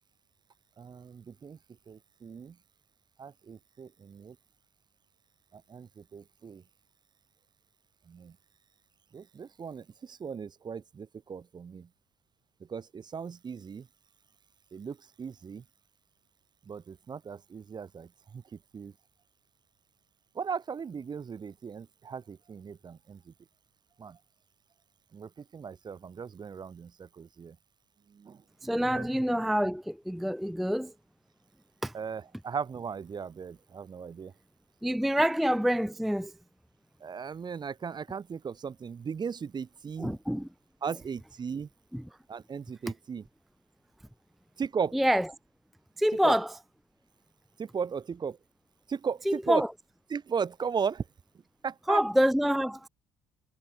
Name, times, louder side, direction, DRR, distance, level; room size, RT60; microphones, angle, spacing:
voice 1, 0.8-1.6 1.9-2.6 3.2-4.4 5.5-6.6 8.1-8.3 9.1-11.9 12.7-13.9 14.7-15.6 16.7-18.9 20.3-23.3 24.0-24.2 25.1-27.6 28.1-28.4 28.9-29.1 31.9-34.3 35.2-35.3 37.0-40.2 40.8-41.7 42.3-43.2 44.6-45.0 46.2-46.4 47.6-48.4 48.9-49.6 50.1-51.0 51.6-52.0, right 6 dB, 35° right, 0.9 m, -37 dB
voice 2, 28.6-30.9 31.8-31.9 34.8-36.3 40.0-40.5 41.9-42.0 44.9-45.3 46.0-46.5 49.3-49.7 51.9-52.9, equal, ahead, 0.4 m, -26 dB
hypercardioid pair, 55°, 13 cm